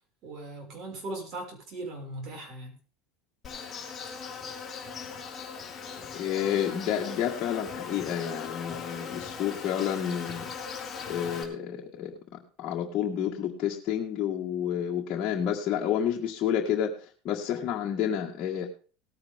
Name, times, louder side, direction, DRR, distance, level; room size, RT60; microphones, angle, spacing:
voice 1, 0.2-2.8, right 2 dB, 45° right, 2 dB, 5.8 m, -39 dB
Insect, 3.4-11.4, left 6 dB, 20° left, 3.4 m, -39 dB
voice 2, 6.1-10.5 11.1-17.0 17.2-18.7, left 9 dB, 40° left, -2 dB, 1.8 m, -30 dB
18.5 x 9.6 x 3.7 m, 0.38 s
supercardioid pair, 130°, 0 cm